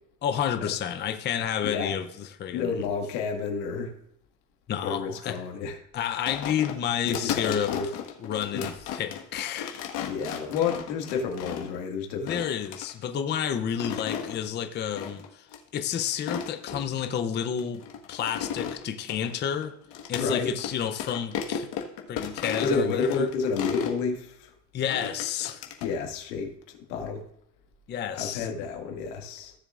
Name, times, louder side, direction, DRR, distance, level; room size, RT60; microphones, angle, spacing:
voice 1, 0.2-2.9 4.7-5.4 5.9-7.7 8.2-9.8 12.2-15.5 15.7-19.7 20.1-21.7 22.1-23.3 24.7-25.6 27.9-28.5, left 9 dB, 25° left, 0.5 m, -30 dB
voice 2, 2.5-3.9 4.8-5.8 7.1-7.9 8.5-8.7 10.1-12.4 20.1-20.5 22.6-24.5 25.8-27.3 28.1-29.5, left 5 dB, 90° left, 1.9 m, -30 dB
sound 1, 6.3-11.8 12.3-12.9 13.6-14.4 14.9-15.3 15.5-15.6 16.1-17.1 17.6-20.3 20.6-20.7 21.0-24.0 24.9-25.9, left 8 dB, 60° left, 1.5 m, -35 dB
16.0 x 7.0 x 2.4 m
supercardioid pair, 125°, 48 cm